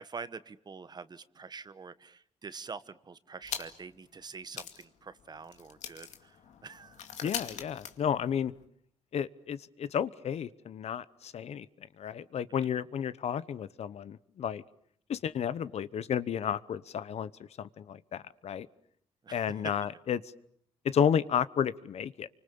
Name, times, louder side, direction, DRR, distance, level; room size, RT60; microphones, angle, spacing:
voice 1, 0.0-6.4 6.6-7.0 12.6-12.7 19.2-19.7, right 5 dB, 35° right, 14 dB, 1.2 m, -45 dB
sound 1, 3.4-4.0 4.2-4.3 4.5-8.6, left 8 dB, 85° left, 2.4 m, -42 dB
voice 2, 7.2-8.5 9.1-11.7 12.0-14.6 15.1-17.3 17.6-18.7 19.3-20.2 20.8-22.3, left 8 dB, 65° left, 16 dB, 1.0 m, -32 dB
29.0 x 25.0 x 7.0 m, 0.68 s
cardioid pair, 100°, 12 cm